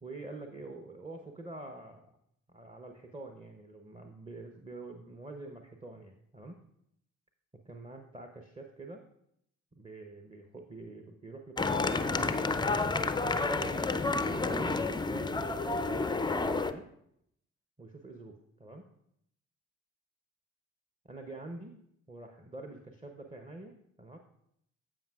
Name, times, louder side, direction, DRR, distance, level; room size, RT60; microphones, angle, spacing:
voice 1, 0.0-2.2 2.5-6.6 7.6-9.0 9.7-13.8 14.2-16.9 17.8-18.9 21.0-21.8 22.1-24.2, right 2 dB, 15° right, 4 dB, 0.9 m, -46 dB
sound 1, 11.6-16.7, left 3 dB, 10° left, 0.5 m, -30 dB
16.0 x 5.4 x 2.4 m, 0.74 s
hypercardioid pair, 40°, 39 cm